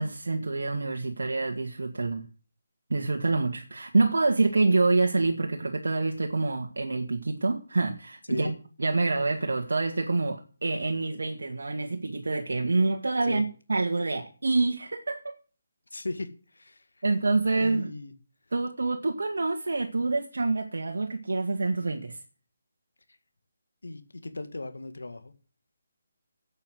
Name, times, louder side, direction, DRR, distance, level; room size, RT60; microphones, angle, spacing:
voice 1, 0.0-2.3 2.9-8.5 8.8-15.4 17.0-17.9 18.5-22.2, right 3 dB, 70° right, 2.0 m, -27 dB
voice 2, 15.9-17.0 17.5-18.1 23.1-23.2 23.8-25.3, left 2 dB, 80° left, 1.9 m, -37 dB
11.5 x 8.7 x 7.9 m
figure-of-eight pair, 150°, 0 cm